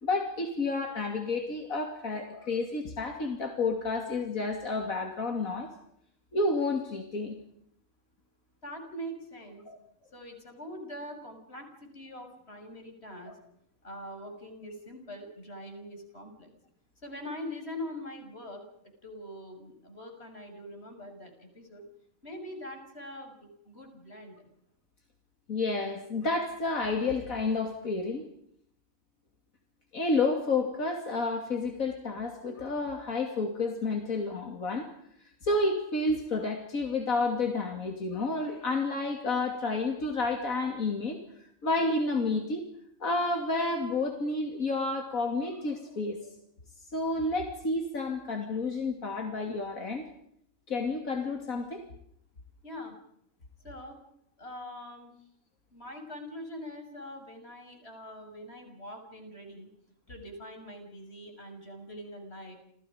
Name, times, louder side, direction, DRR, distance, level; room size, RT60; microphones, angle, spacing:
voice 1, 0.0-5.7 6.3-7.4 9.7-9.8 13.3-13.4 25.5-28.2 29.9-34.9 35.4-42.6 43.0-46.3 46.9-50.0 50.7-51.8, left 3 dB, 75° left, 3 dB, 3.1 m, -30 dB
voice 2, 8.6-9.6 10.1-13.3 13.8-16.5 17.0-18.6 19.0-21.8 22.2-24.5 52.6-52.9 53.6-54.0 54.4-55.1 55.7-59.7 60.1-62.5, left 1 dB, 45° left, 5 dB, 6.6 m, -43 dB
29.5 x 28.5 x 5.1 m, 0.71 s
omnidirectional pair, 1.4 m